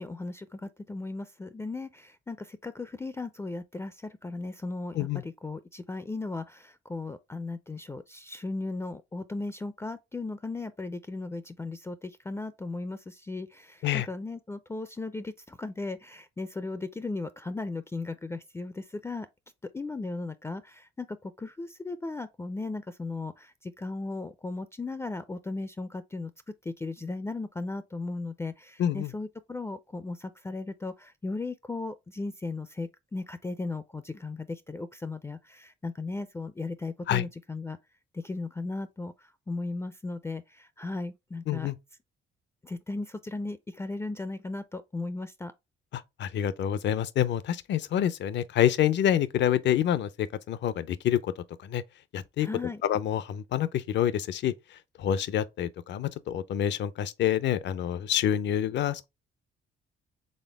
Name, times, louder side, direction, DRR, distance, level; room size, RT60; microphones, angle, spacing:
voice 1, 0.0-19.3 19.6-26.3 26.6-37.8 38.1-41.7 42.6-45.5 52.4-52.8, left 3 dB, 15° left, 0.4 m, -36 dB
voice 2, 28.8-29.1 37.1-37.3 41.5-41.8 45.9-51.8 52.1-52.5 52.8-54.5 55.0-59.1, left 10 dB, 65° left, 0.5 m, -27 dB
4.3 x 3.5 x 3.3 m
cardioid pair, 90°, 20 cm